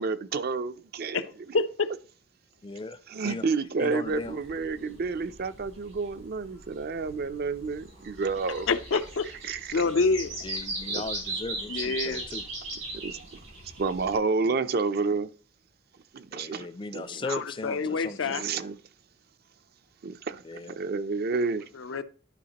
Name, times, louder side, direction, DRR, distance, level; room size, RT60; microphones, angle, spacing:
voice 1, 0.0-1.6 3.1-9.8 10.9-11.0 13.0-13.2 13.8-15.3 16.1-16.7 16.9-17.4 17.8-18.8 20.0-20.4 20.7-21.6, right 4 dB, 50° right, 0.5 m, -30 dB
voice 2, 1.5-1.9 8.7-9.3 9.7-10.4 11.7-12.3 17.2-18.5 21.8-22.0, left 4 dB, 80° left, 0.6 m, -27 dB
voice 3, 2.6-3.4 3.8-4.3 10.4-12.5 16.3-18.7 20.4-20.8, left 3 dB, 25° left, 0.4 m, -38 dB
sound 1, 4.1-14.2, right 2 dB, 85° right, 4.0 m, -38 dB
11.5 x 4.9 x 2.9 m
head